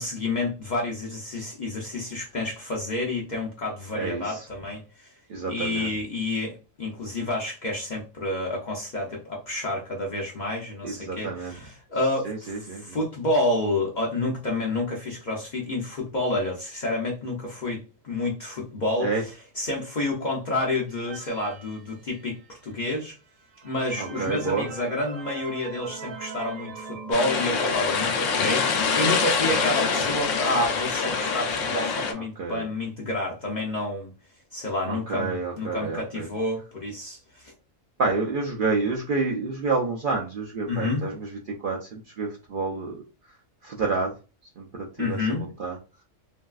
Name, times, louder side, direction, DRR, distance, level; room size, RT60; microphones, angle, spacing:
voice 1, 0.0-5.2 5.5-23.2 23.6-34.1 34.5-37.5 40.7-41.0 45.0-45.5, left 2 dB, 50° left, 0.5 m, -29 dB
voice 2, 4.0-4.5 5.3-5.9 10.8-11.5 12.2-13.0 19.0-19.2 24.0-24.7 32.4-32.6 34.9-36.3 38.0-43.0 43.6-44.1 44.6-45.8, right 4 dB, 60° right, 0.5 m, -29 dB
sound 1, 20.9-22.5 23.1-23.2 23.5-28.1, right 5 dB, 85° right, 1.0 m, -41 dB
sound 2, 27.1-32.1, left 5 dB, 75° left, 0.9 m, -25 dB
3.1 x 2.6 x 2.3 m
omnidirectional pair, 1.3 m